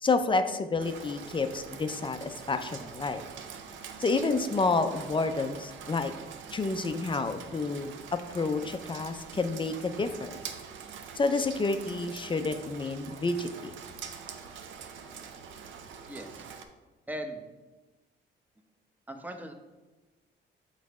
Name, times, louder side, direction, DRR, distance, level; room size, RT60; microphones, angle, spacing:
voice 1, 0.0-3.2 4.0-6.1 6.5-10.5 11.2-13.7, left 3 dB, 25° left, 8 dB, 0.5 m, -29 dB
Rain, 0.8-16.6, right 6 dB, 75° right, 0.7 m, -44 dB
voice 2, 16.1-16.5 17.1-17.4 19.1-19.5, right 1 dB, 10° right, 5 dB, 0.8 m, -38 dB
6.4 x 4.1 x 4.7 m, 1.2 s
cardioid pair, 90°, 20 cm